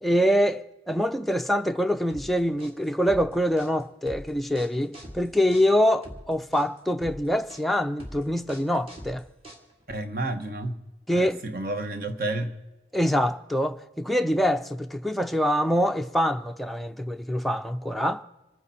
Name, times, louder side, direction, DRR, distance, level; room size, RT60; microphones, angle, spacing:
voice 1, 0.0-9.2 11.1-11.4 12.9-18.2, equal, ahead, 0.4 m, -25 dB
sound 1, 2.1-10.0, equal, 30° right, 2.0 m, -43 dB
voice 2, 9.9-10.8 11.1-12.5, right 2 dB, 55° right, 1.2 m, -30 dB
27.0 x 9.6 x 4.2 m
head